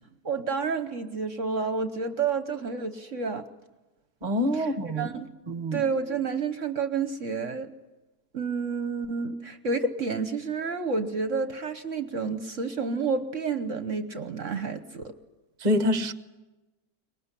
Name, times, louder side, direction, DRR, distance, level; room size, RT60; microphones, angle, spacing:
voice 1, 0.2-3.4 4.5-4.7 5.0-5.3 5.7-7.7 8.3-15.1, right 4 dB, 50° right, 9 dB, 1.3 m, -30 dB
voice 2, 4.2-5.1 5.5-5.8 15.6-16.1, left 1 dB, 30° right, 9 dB, 1.2 m, -26 dB
24.0 x 20.5 x 9.9 m, 1.1 s
omnidirectional pair, 1.7 m